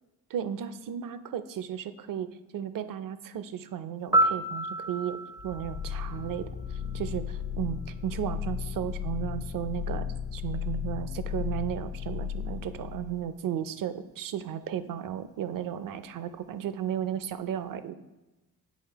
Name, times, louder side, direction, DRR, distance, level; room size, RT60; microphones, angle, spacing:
voice 1, 0.3-2.3 2.5-6.4 6.9-10.1 10.3-18.0, right 10 dB, 55° right, 13 dB, 0.6 m, -34 dB
Piano, 4.1-7.1 15.2-15.4, right 1 dB, 10° right, 0.5 m, -30 dB
sound 1, 5.4-13.2, left 8 dB, 60° left, 0.8 m, -35 dB
8.5 x 3.3 x 4.5 m, 1.0 s
supercardioid pair, 70°, 39 cm